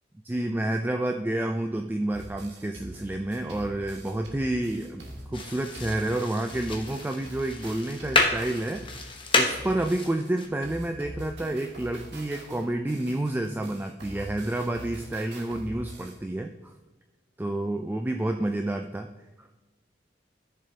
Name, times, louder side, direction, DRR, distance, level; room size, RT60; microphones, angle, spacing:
voice 1, 0.2-5.0 5.3-16.7 17.4-19.1 19.4-19.6, right 1 dB, 10° right, 5 dB, 0.3 m, -29 dB
sound 1, 2.1-10.3 10.6-16.2, right 1 dB, 75° right, 1.7 m, -43 dB
sound 2, 5.3-10.5, left 3 dB, 30° left, 1.1 m, -30 dB
12.0 x 6.8 x 2.8 m, 1.2 s
head